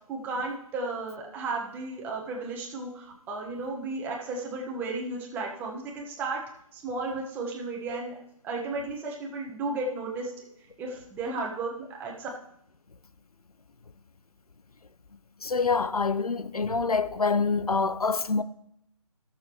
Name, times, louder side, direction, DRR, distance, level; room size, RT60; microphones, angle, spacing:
voice 1, 0.1-6.4 6.7-8.1 8.4-10.3 10.8-11.7 12.0-12.3, right 3 dB, 10° right, 1.3 m, -34 dB
voice 2, 15.4-18.4, left 4 dB, 85° left, 0.7 m, -26 dB
19.0 x 6.8 x 3.1 m
figure-of-eight pair, 150°, 19 cm